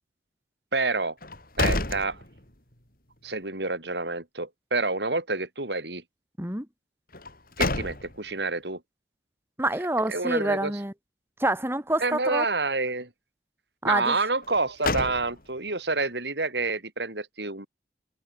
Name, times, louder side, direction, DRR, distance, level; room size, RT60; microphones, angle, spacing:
voice 1, 0.7-1.1 1.6-2.2 3.2-6.0 7.6-8.8 10.1-10.7 12.0-13.1 13.8-17.7, right 3 dB, 75° right, 6.2 m, -28 dB
sound 1, 1.2-2.8 3.2-3.3 7.1-8.4 14.4-15.7, left 2 dB, 55° left, 6.7 m, -30 dB
voice 2, 9.6-10.9 11.4-12.4 13.8-14.2, right 1 dB, 15° right, 4.3 m, -27 dB
head